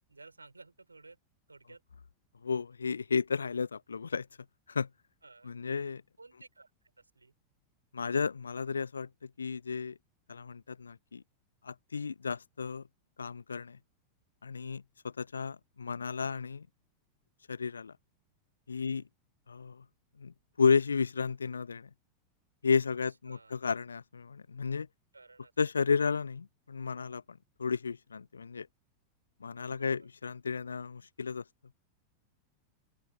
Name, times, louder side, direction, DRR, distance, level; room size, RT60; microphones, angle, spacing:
voice 1, 0.1-1.2 1.5-1.8 5.2-5.6 6.2-6.7 7.0-7.3 18.8-19.1 22.9-23.0 23.3-23.5 25.1-25.5 29.7-30.1, right 3 dB, 80° right, 5.7 m, -55 dB
voice 2, 2.4-4.3 4.7-4.9 5.4-6.0 7.9-9.1 9.4-10.0 10.3-11.2 11.6-12.8 13.2-13.8 14.4-16.7 17.5-17.9 18.7-19.0 19.5-19.8 20.2-21.9 22.6-24.9 25.6-28.7 29.4-31.4, left 5 dB, 75° left, 0.5 m, -32 dB
open air
figure-of-eight pair, 90°, 0 cm